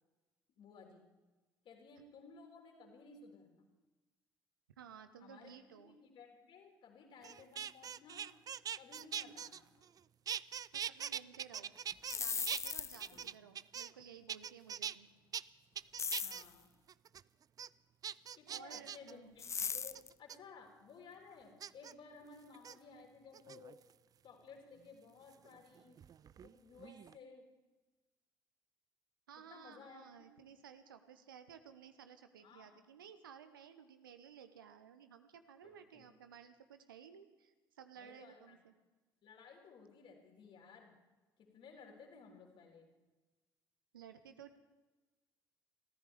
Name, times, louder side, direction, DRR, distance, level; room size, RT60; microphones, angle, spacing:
voice 1, 0.5-1.1 1.6-3.7 5.2-8.3 8.8-9.9 13.1-13.3 16.2-16.7 18.4-23.8 24.2-26.0 26.4-27.5 29.4-30.2 32.4-32.8 35.6-36.1 38.0-38.6 39.2-41.0 41.4-42.9, left 5 dB, 50° left, 1 dB, 4.1 m, -57 dB
voice 2, 4.8-6.0 10.7-11.7 12.1-15.1 18.5-19.4 29.3-38.7 43.9-44.6, right 8 dB, 80° right, 10 dB, 1.0 m, -56 dB
sound 1, 7.2-10.0 10.3-12.2 12.5-14.0 14.3-14.9 15.3-15.4 15.8-16.4 16.9-17.2 17.6-17.7 18.0-19.1 19.9-20.4 21.6-21.9 22.5-22.7 23.3-23.9 25.3-26.5 26.8-27.2, right 8 dB, 35° right, 0.4 m, -42 dB
sound 2, 11.9-13.2 16.0-16.5 19.4-20.1, left 6 dB, 25° left, 0.5 m, -38 dB
27.5 x 14.5 x 3.5 m, 1.2 s
figure-of-eight pair, 55°, 11 cm